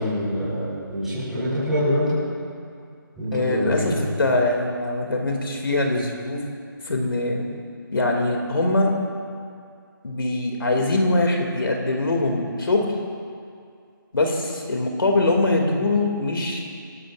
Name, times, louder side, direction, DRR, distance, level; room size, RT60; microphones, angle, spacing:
voice 1, 0.0-2.2 3.2-4.0, left 1 dB, 5° right, -14 dB, 4.1 m, -25 dB
voice 2, 3.3-3.9 4.2-6.4 6.8-7.4 7.9-8.9 10.0-13.0 14.1-16.6, left 2 dB, 75° left, 1 dB, 2.5 m, -22 dB
26.0 x 12.5 x 2.5 m, 2.3 s
hypercardioid pair, 175°, 12 cm